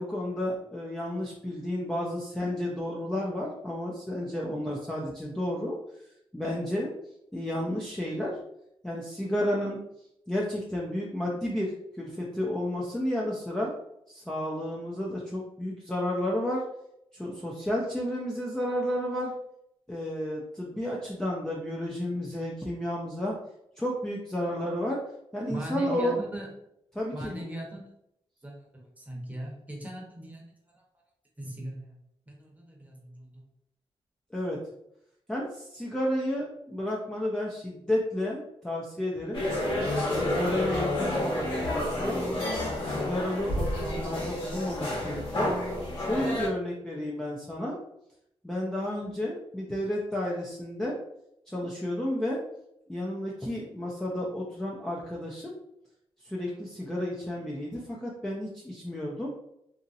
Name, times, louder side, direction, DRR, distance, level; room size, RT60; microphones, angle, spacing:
voice 1, 0.0-5.8 6.3-6.9 7.3-8.4 8.8-9.8 10.3-13.7 14.1-16.6 17.1-19.3 19.9-23.4 23.8-25.0 25.3-26.2 26.9-27.4 34.3-34.6 35.3-39.4 40.1-42.2 42.7-45.5 46.0-47.8 48.4-50.9 51.5-52.4 52.9-55.6 56.2-59.3, left 1 dB, 5° left, -4 dB, 0.5 m, -32 dB
voice 2, 25.5-26.5 27.1-27.9 28.4-28.5 29.0-30.5 30.7-30.8 31.4-31.9 32.3-33.4, right 1 dB, 15° right, -1 dB, 0.9 m, -39 dB
sound 1, 39.3-46.5, left 1 dB, 55° left, 1.1 m, -30 dB
2.8 x 2.7 x 2.5 m, 0.77 s
cardioid pair, 105°, 10 cm